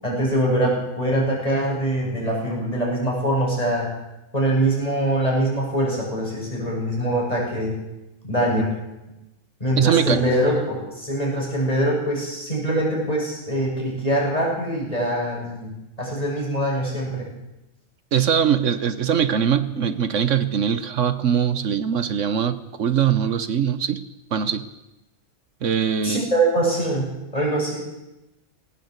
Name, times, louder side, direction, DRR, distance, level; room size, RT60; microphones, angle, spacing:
voice 1, 0.0-3.9 4.3-7.7 8.2-8.7 9.6-15.7 16.0-17.3 26.0-27.8, right 1 dB, 25° left, -3 dB, 7.2 m, -23 dB
voice 2, 9.8-10.2 18.1-24.0 24.3-24.7 25.6-26.2, right 8 dB, 60° right, 13 dB, 1.2 m, -22 dB
19.0 x 18.0 x 8.0 m, 0.96 s
omnidirectional pair, 1.5 m